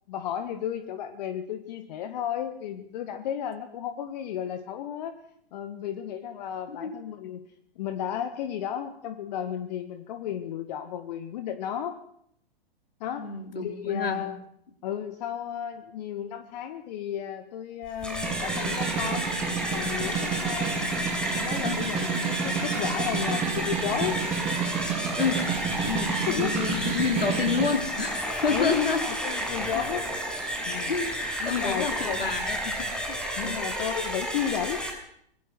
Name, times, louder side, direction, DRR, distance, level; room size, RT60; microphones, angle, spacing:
voice 1, 0.1-5.2 5.5-7.4 7.7-11.9 13.0-13.3 13.6-14.4 14.8-19.3 19.7-20.8 21.4-24.2 26.1-26.5 28.5-30.0 30.6-31.0 31.4-32.3 33.4-34.8, left 10 dB, 45° left, 9 dB, 1.7 m, -33 dB
voice 2, 13.2-14.2 21.6-21.8 25.2-25.5 25.8-29.0 29.7-29.8 30.9-33.6, left 5 dB, 70° left, 5 dB, 4.3 m, -29 dB
sound 1, 17.9-34.9, equal, 5° left, 6.2 m, -31 dB
Snare drum, 18.0-27.8, right 6 dB, 20° right, 3.7 m, -31 dB
26.0 x 20.5 x 6.2 m, 0.70 s
figure-of-eight pair, 105°, 29 cm